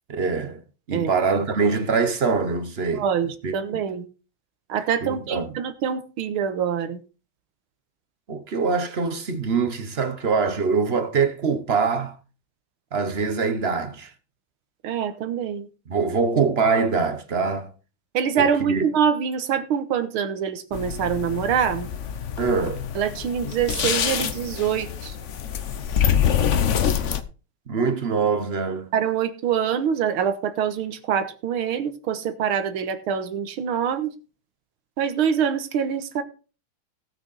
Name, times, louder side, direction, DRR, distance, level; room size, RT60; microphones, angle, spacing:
voice 1, 0.2-0.6 0.9-3.0 3.4-3.5 5.0-5.5 8.3-12.1 12.9-14.1 15.9-17.7 18.4-18.9 22.4-22.8 27.7-28.9, right 5 dB, 45° right, 0.8 m, -23 dB
voice 2, 2.9-4.0 4.7-7.0 14.8-15.7 18.1-21.9 23.0-25.2 28.9-34.1 35.0-36.2, right 8 dB, 75° right, 2.0 m, -25 dB
sound 1, 20.7-27.2, left 8 dB, 60° left, 0.7 m, -25 dB
17.5 x 6.3 x 4.1 m
omnidirectional pair, 2.4 m